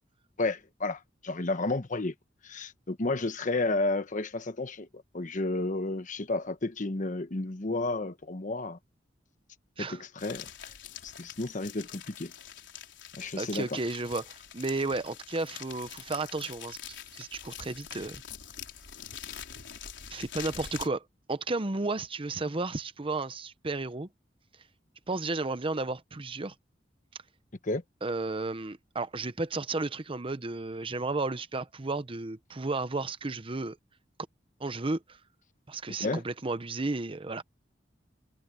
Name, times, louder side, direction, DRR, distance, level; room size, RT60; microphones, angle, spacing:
voice 1, 0.4-2.1 2.4-8.8 9.8-10.5 11.0-12.3 13.2-13.8 27.6-27.8 36.0-36.2, left 2 dB, 45° left, 1.1 m, -32 dB
sound 1, 10.2-20.9, left 9 dB, 70° left, 4.5 m, -45 dB
voice 2, 13.4-18.2 20.1-21.0 21.3-24.1 25.1-26.5 28.0-33.8 34.6-35.2 35.7-37.4, right 3 dB, 30° right, 0.8 m, -33 dB
head